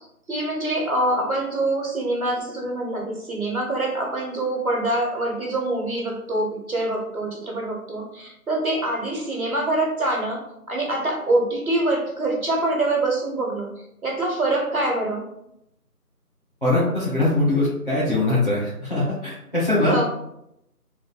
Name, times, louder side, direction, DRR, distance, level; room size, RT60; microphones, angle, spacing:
voice 1, 0.3-13.7 14.0-15.3 19.8-20.0, right 2 dB, 65° right, 0 dB, 1.2 m, -25 dB
voice 2, 16.6-19.9, left 2 dB, 35° left, -11 dB, 1.2 m, -22 dB
3.6 x 3.4 x 2.2 m, 0.79 s
figure-of-eight pair, 175°, 47 cm